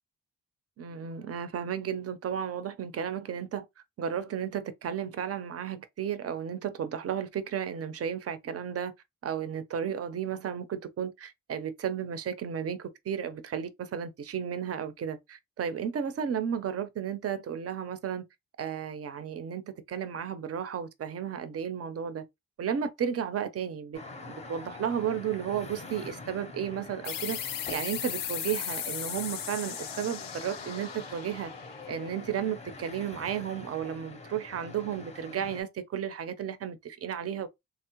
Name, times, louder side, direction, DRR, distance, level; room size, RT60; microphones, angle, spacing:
voice 1, 0.8-3.7 4.0-8.9 9.2-18.2 18.6-22.2 22.6-24.0 24.3-31.5 31.9-37.5, right 8 dB, 45° right, 0.5 m, -33 dB
sound 1, 23.9-35.6, left 3 dB, 20° left, 0.6 m, -45 dB
sound 2, 27.0-32.3, left 10 dB, 85° left, 0.5 m, -37 dB
3.5 x 2.0 x 2.8 m
wide cardioid pair, 130°, 32 cm